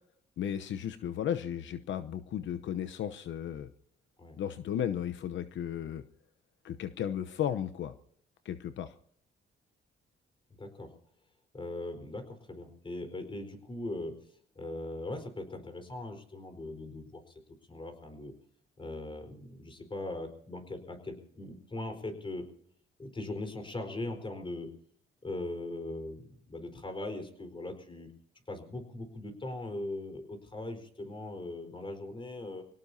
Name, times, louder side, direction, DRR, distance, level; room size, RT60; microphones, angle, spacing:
voice 1, 0.4-3.7 4.4-6.0 6.6-7.9 8.4-8.9, left 9 dB, 70° left, 11 dB, 0.9 m, -34 dB
voice 2, 10.6-10.9 11.5-14.2 14.5-17.4 17.7-18.3 18.8-22.5 23.0-24.7 25.2-28.1 28.5-32.7, left 2 dB, 25° left, 7 dB, 4.5 m, -40 dB
25.5 x 17.5 x 2.8 m, 0.64 s
cardioid pair, 90°, 20 cm